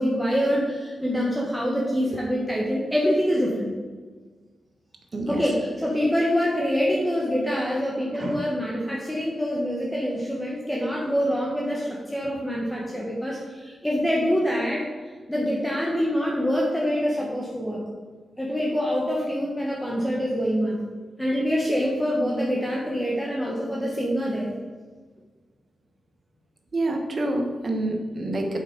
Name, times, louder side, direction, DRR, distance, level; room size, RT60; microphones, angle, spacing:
voice 1, 0.0-3.7 5.3-14.8 15.3-17.8 18.4-20.8 21.2-24.5, equal, 5° left, -4 dB, 1.1 m, -25 dB
voice 2, 26.7-28.6, right 1 dB, 40° right, 2 dB, 1.3 m, -27 dB
7.2 x 5.7 x 5.2 m, 1.4 s
wide cardioid pair, 135°, 0 cm